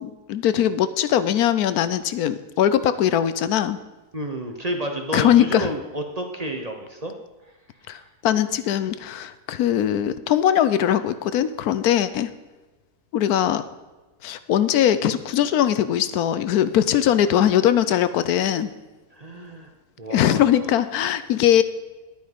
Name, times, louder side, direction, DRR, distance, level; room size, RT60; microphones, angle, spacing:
voice 1, 0.0-3.8 5.1-5.7 7.9-12.3 13.1-13.7 14.2-18.7 20.1-21.6, left 10 dB, 80° left, 13 dB, 1.1 m, -21 dB
voice 2, 4.1-7.1 7.9-8.0 19.1-19.7 20.0-20.4, right 1 dB, 30° right, 4 dB, 0.9 m, -30 dB
11.0 x 9.3 x 5.1 m, 1.2 s
omnidirectional pair, 1.6 m